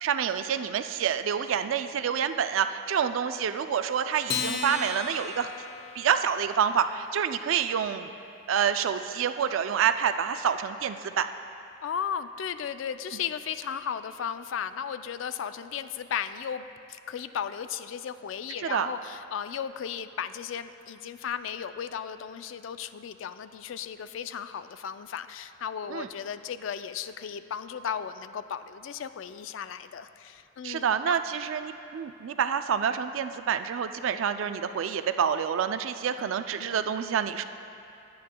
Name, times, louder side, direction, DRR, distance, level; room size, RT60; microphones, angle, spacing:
voice 1, 0.0-5.5 6.0-8.1 8.5-11.3 18.7-18.9 25.9-26.1 30.6-37.4, right 7 dB, 80° right, 10 dB, 0.4 m, -27 dB
Acoustic guitar, 4.2-6.9, left 5 dB, 55° left, 0.7 m, -35 dB
voice 2, 11.8-31.2 36.2-36.3 36.6-36.8, left 8 dB, 70° left, 12 dB, 0.4 m, -35 dB
18.0 x 8.5 x 2.2 m, 2.8 s
head